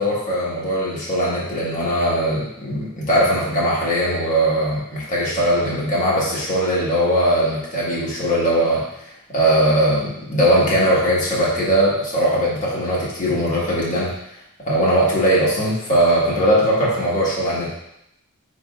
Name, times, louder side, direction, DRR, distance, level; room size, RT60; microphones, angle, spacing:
voice 1, 0.0-8.8 9.3-14.1 14.7-17.7, equal, 35° left, -7 dB, 1.4 m, -20 dB
4.7 x 3.8 x 2.4 m, 0.81 s
head